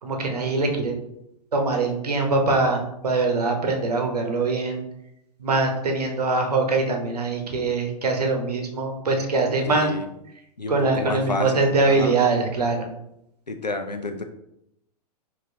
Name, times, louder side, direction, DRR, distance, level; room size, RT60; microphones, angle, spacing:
voice 1, 0.0-0.9 1.5-4.9 5.4-9.9 10.7-12.9, right 3 dB, 70° right, 3 dB, 1.0 m, -23 dB
voice 2, 9.7-10.0 10.6-11.5 11.9-12.1 13.5-14.2, left 3 dB, 90° left, 6 dB, 0.6 m, -29 dB
5.3 x 2.8 x 2.8 m, 0.80 s
figure-of-eight pair, 100°, 21 cm